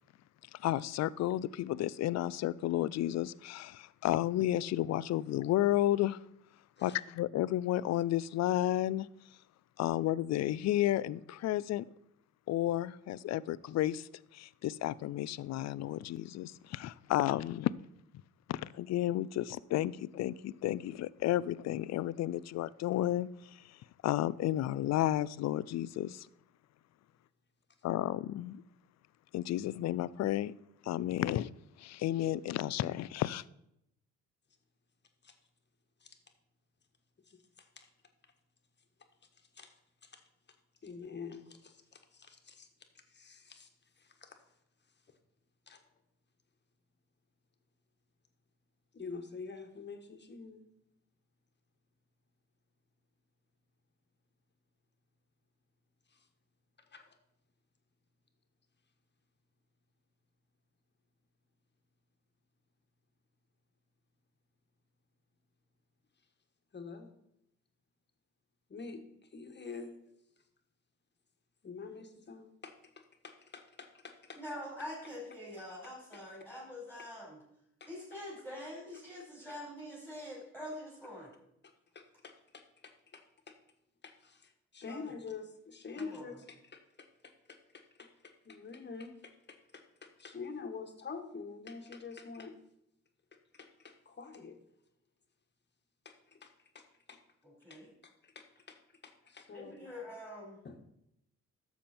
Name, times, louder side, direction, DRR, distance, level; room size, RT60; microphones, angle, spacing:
voice 1, 0.5-6.2 6.8-9.1 9.8-11.9 12.5-17.7 18.5-26.3 27.8-28.6 29.3-30.5 30.8-31.5 31.8-33.4, left 13 dB, 60° left, 0.4 m, -32 dB
voice 2, 40.8-42.7 43.1-43.7 44.2-44.3 45.7-45.8 48.9-50.6 56.9-57.0 66.7-67.1 68.7-69.0 69.3-69.9 71.6-72.7 73.2-74.4 81.9-82.6 83.1-83.2 84.0-86.3 86.7-87.1 87.5-89.3 89.7-92.5 93.5-94.6 96.0-96.5 96.7-96.8 97.1-97.2 97.7-97.8 98.3-98.8 99.0-99.9 100.6-100.7, left 5 dB, 35° left, 1.5 m, -46 dB
voice 3, 74.4-77.4 77.9-81.4 84.9-85.2 85.9-86.4 97.4-97.9 99.5-100.6, left 1 dB, 5° right, 4.0 m, -45 dB
11.5 x 7.1 x 4.3 m
cardioid pair, 90°, 30 cm